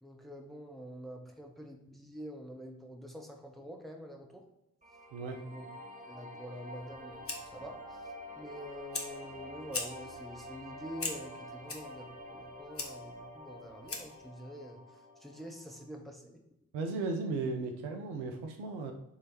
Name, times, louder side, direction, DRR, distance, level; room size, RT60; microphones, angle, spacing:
voice 1, 0.0-4.5 5.3-5.7 6.1-7.2 7.5-16.4, equal, ahead, 1 dB, 1.3 m, -46 dB
sound 1, 4.8-15.9, equal, 15° right, 1.9 m, -48 dB
voice 2, 5.1-5.4 16.7-18.9, right 3 dB, 70° right, 4 dB, 0.9 m, -35 dB
Fire, 6.8-14.3, left 3 dB, 25° left, 1.3 m, -43 dB
7.1 x 3.4 x 4.3 m, 0.84 s
figure-of-eight pair, 40°, 49 cm